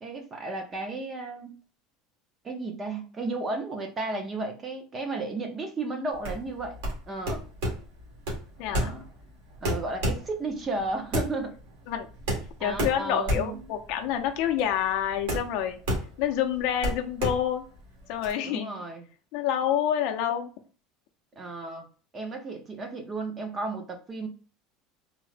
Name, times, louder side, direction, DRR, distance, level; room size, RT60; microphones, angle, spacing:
voice 1, 0.0-1.6 2.4-6.8 7.1-7.4 8.7-9.1 9.6-11.5 12.6-13.7 18.4-19.1 21.4-21.9 22.1-24.3, right 3 dB, 20° right, 0.5 m, -33 dB
sound 1, 6.1-18.3, equal, 80° right, 1.5 m, -32 dB
voice 2, 8.6-8.9 11.9-12.1 12.6-15.8 16.2-17.7 18.1-18.7 19.3-20.5, left 10 dB, 50° left, 0.5 m, -27 dB
3.6 x 2.0 x 3.2 m
cardioid pair, 175°, 0 cm